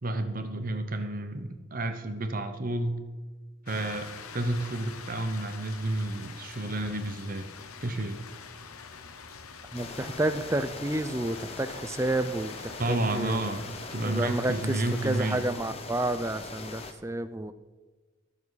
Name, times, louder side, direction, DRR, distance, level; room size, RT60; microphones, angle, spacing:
voice 1, 0.0-3.0 3.7-7.5 7.8-8.2 12.8-13.6 13.9-15.4, right 2 dB, 40° right, 8 dB, 0.9 m, -31 dB
sound 1, 3.7-15.6, left 5 dB, 85° left, 0.9 m, -46 dB
sound 2, 9.7-16.9, left 3 dB, 30° left, 0.9 m, -41 dB
voice 2, 9.7-13.4 14.0-17.5, right 1 dB, 15° right, 11 dB, 0.5 m, -30 dB
21.0 x 7.2 x 4.1 m, 1.3 s
head